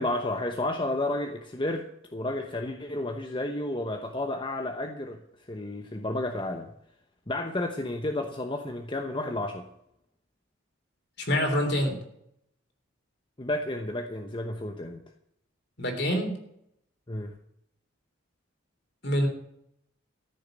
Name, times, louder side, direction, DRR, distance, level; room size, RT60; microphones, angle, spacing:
voice 1, 0.0-5.2 5.5-6.7 7.3-9.7 13.4-15.0 17.1-17.4, left 1 dB, 25° left, 4 dB, 0.9 m, -31 dB
voice 2, 11.2-12.0 15.8-16.3 19.0-19.3, equal, 55° left, 4 dB, 3.3 m, -26 dB
14.0 x 6.6 x 9.0 m, 0.76 s
head